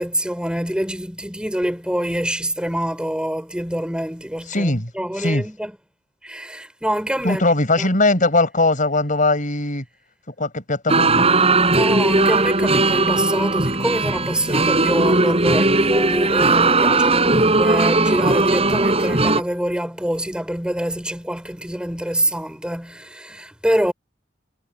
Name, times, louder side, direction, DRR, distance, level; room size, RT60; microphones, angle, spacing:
voice 1, 0.0-5.7 6.2-7.4 7.8-7.9 11.7-23.9, equal, 5° right, 4.5 m, -25 dB
voice 2, 4.5-4.9 5.2-5.4 7.2-9.8 10.4-11.3, left 2 dB, 45° left, 7.0 m, -20 dB
sound 1, 10.9-19.4, right 3 dB, 35° right, 6.8 m, -18 dB
head